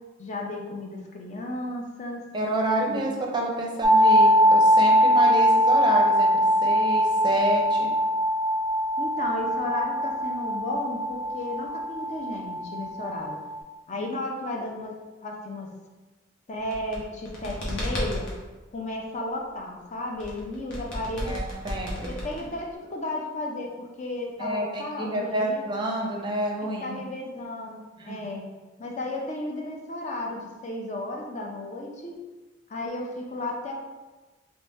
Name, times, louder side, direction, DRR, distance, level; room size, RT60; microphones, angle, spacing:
voice 1, 0.2-2.3 2.9-3.0 9.0-13.4 13.9-14.9 15.2-15.7 16.5-18.3 18.7-21.3 22.1-25.6 26.8-28.4 28.8-32.2 32.7-33.8, left 1 dB, 40° left, 0 dB, 0.5 m, -33 dB
voice 2, 2.3-7.9 13.9-14.1 21.2-22.1 22.4-22.5 24.4-27.0 28.0-28.4, right 1 dB, 25° right, -1 dB, 0.5 m, -29 dB
sound 1, 3.8-13.6, equal, ahead, 0.9 m, -22 dB
sound 2, 16.6-18.4 20.2-22.8, left 1 dB, 90° left, 1.0 m, -33 dB
3.1 x 2.8 x 3.4 m, 1.2 s
head